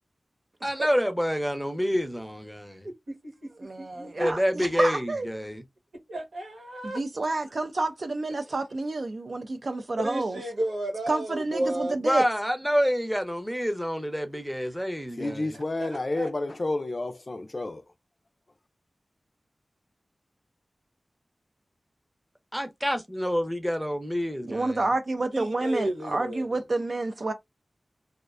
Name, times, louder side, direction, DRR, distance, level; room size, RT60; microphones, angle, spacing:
voice 1, 0.6-2.9 4.2-5.6 12.0-15.5 22.5-24.8, equal, ahead, 0.6 m, -27 dB
voice 2, 3.1-3.5 3.8-4.3 6.1-7.0 10.0-12.0 15.5-16.3 25.3-26.5, right 1 dB, 90° right, 1.1 m, -33 dB
voice 3, 3.6-5.3 6.8-10.4 11.1-12.2 24.4-27.3, right 2 dB, 60° right, 0.3 m, -29 dB
voice 4, 15.2-17.8, left 2 dB, 50° left, 0.4 m, -30 dB
2.4 x 2.1 x 2.3 m
cardioid pair, 50°, 0 cm